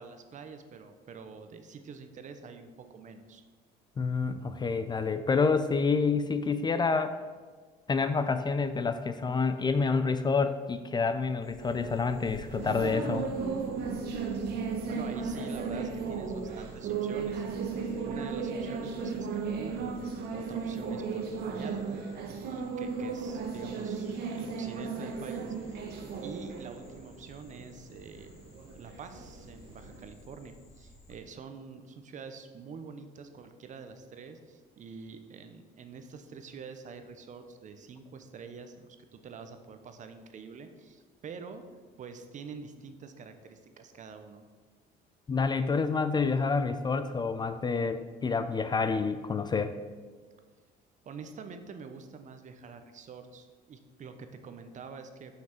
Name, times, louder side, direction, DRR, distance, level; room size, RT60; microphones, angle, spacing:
voice 1, 0.0-3.4 14.8-25.8 26.2-28.4 28.7-44.4 51.0-55.4, right 5 dB, 45° right, 8 dB, 0.8 m, -46 dB
voice 2, 4.0-7.2 7.9-13.3 45.3-49.8, left 4 dB, 25° left, 10 dB, 0.4 m, -28 dB
sound 1, 11.4-31.2, left 2 dB, 65° left, 1.9 m, -53 dB
sound 2, 11.6-30.0, right 5 dB, 75° right, 1.1 m, -35 dB
6.1 x 5.8 x 5.9 m, 1.5 s
cardioid pair, 110°, 17 cm